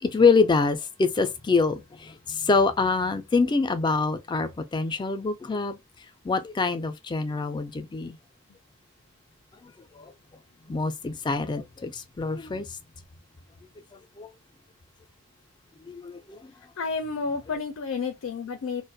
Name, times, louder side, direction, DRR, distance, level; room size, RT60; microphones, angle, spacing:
voice 1, 0.0-5.8 6.2-8.2 10.7-12.7 14.2-14.3 15.9-16.2, left 4 dB, 20° left, 0.3 m, -25 dB
voice 2, 16.8-18.8, left 4 dB, 85° left, 0.4 m, -30 dB
2.3 x 2.1 x 2.6 m
head